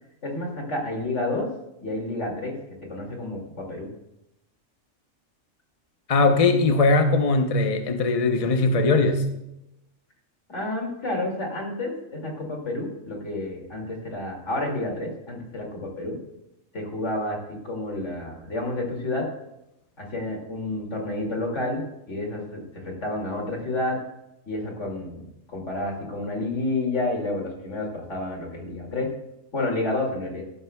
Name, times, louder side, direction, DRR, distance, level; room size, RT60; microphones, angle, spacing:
voice 1, 0.2-1.5 1.8-2.6 2.9-3.9 10.5-16.2 16.7-17.4 17.6-19.2 20.0-24.0 24.5-25.2 25.5-29.1 29.5-30.4, left 2 dB, 60° left, 0 dB, 2.7 m, -30 dB
voice 2, 6.1-9.2, left 3 dB, 35° left, 5 dB, 0.7 m, -20 dB
15.0 x 12.5 x 2.3 m, 0.88 s
omnidirectional pair, 1.4 m